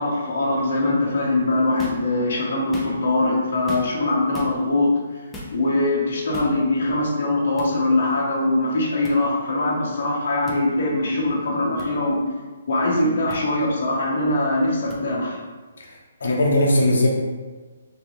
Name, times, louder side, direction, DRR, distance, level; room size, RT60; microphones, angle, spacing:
voice 1, 0.0-5.0 5.5-12.2 12.7-15.4, left 2 dB, 55° left, -3 dB, 0.7 m, -22 dB
sound 1, 1.8-2.1 2.6-3.2 3.7-4.0 4.3-4.5 5.3-5.6 6.3-6.6 7.6-7.7 9.0-9.2 10.5-10.6 11.8-11.9 13.3-13.4 14.9-15.0, left 1 dB, 5° left, 0.4 m, -35 dB
voice 2, 15.8-17.1, left 1 dB, 85° left, -2 dB, 0.7 m, -20 dB
3.1 x 2.6 x 3.0 m, 1.4 s
hypercardioid pair, 170°, 0 cm